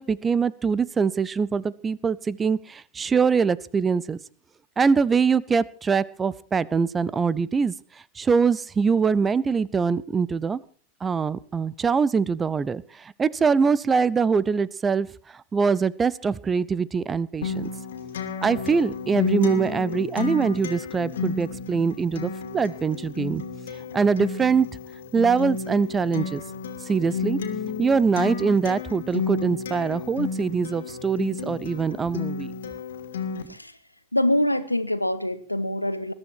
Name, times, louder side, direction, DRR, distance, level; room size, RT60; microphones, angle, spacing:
voice 1, 0.0-4.2 4.8-7.7 8.2-10.6 11.0-17.7 18.4-23.4 23.9-24.7 25.1-26.4 26.9-27.4 27.8-32.5, right 5 dB, 15° right, 21 dB, 0.7 m, -23 dB
Acoustic guitar, 17.4-33.4, left 5 dB, 60° left, 2.5 m, -32 dB
voice 2, 33.5-33.8 34.1-36.1, left 1 dB, 85° left, 13 dB, 1.3 m, -25 dB
21.0 x 13.0 x 4.6 m, 0.41 s
figure-of-eight pair, 90°, 0 cm